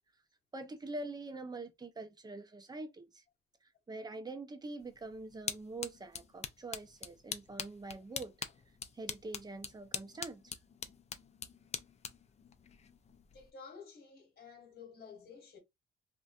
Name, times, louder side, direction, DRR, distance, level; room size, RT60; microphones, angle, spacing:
voice 1, 0.5-3.2 3.6-8.3 8.9-10.6, right 2 dB, 20° right, 0.6 m, -45 dB
sound 1, 4.8-13.5, left 6 dB, 35° left, 0.4 m, -45 dB
voice 2, 13.3-15.6, left 5 dB, 50° left, 1.2 m, -52 dB
2.5 x 2.2 x 2.4 m
cardioid pair, 90°, 20 cm